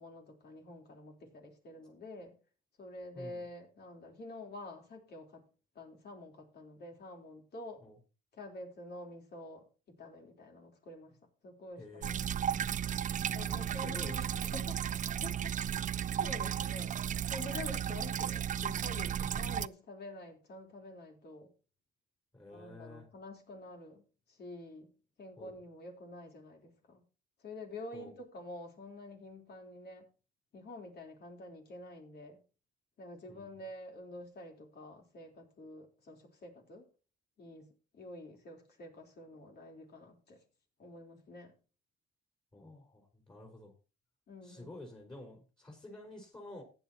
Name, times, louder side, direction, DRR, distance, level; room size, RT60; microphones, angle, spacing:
voice 1, 0.0-2.3 2.8-5.4 5.8-7.8 8.4-11.1 11.4-12.8 13.3-14.3 14.5-14.8 15.2-15.5 16.2-17.0 17.3-21.5 22.5-24.0 24.3-24.9 25.2-27.0 27.4-30.1 30.5-32.4 33.0-36.8 37.4-37.7 37.9-40.4 40.8-41.5 44.3-44.7, left 2 dB, 55° left, 2 dB, 3.7 m, -48 dB
voice 2, 3.1-3.4 7.8-8.0 11.8-12.1 13.4-14.5 14.9-15.0 19.0-19.3 22.3-23.1 25.4-25.6 27.9-28.1 33.3-33.5 42.5-43.7 44.4-46.6, left 2 dB, 20° left, 1 dB, 4.3 m, -50 dB
sound 1, 12.0-19.7, right 9 dB, 40° right, 0.4 m, -34 dB
15.0 x 9.5 x 2.9 m, 0.35 s
cardioid pair, 90°, 20 cm